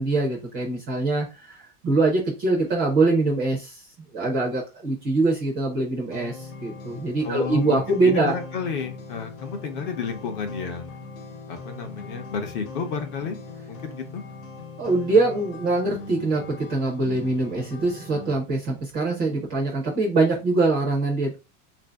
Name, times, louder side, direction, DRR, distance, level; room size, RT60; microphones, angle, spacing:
voice 1, 0.0-3.8 4.1-8.4 14.8-21.4, right 3 dB, 20° right, -1 dB, 0.4 m, -23 dB
sound 1, 6.1-18.4, left 3 dB, 60° left, 1.0 m, -40 dB
voice 2, 7.2-10.9 11.5-13.4 13.7-14.2, left 5 dB, 35° left, 6 dB, 0.5 m, -31 dB
3.6 x 2.6 x 3.2 m, 0.28 s
supercardioid pair, 175°, 45 cm